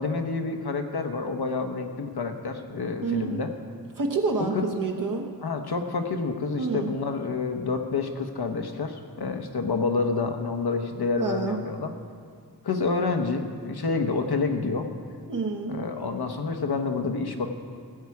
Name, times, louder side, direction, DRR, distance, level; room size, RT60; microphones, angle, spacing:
voice 1, 0.0-3.5 4.5-4.6 5.4-11.9 12.6-14.9 15.7-17.5, left 4 dB, 70° left, 6 dB, 1.1 m, -28 dB
voice 2, 3.0-3.4 4.0-5.3 6.6-6.9 11.2-11.6 15.3-15.9, right 4 dB, 55° right, 2 dB, 1.1 m, -28 dB
16.0 x 8.2 x 4.8 m, 2.1 s
wide cardioid pair, 85°, 39 cm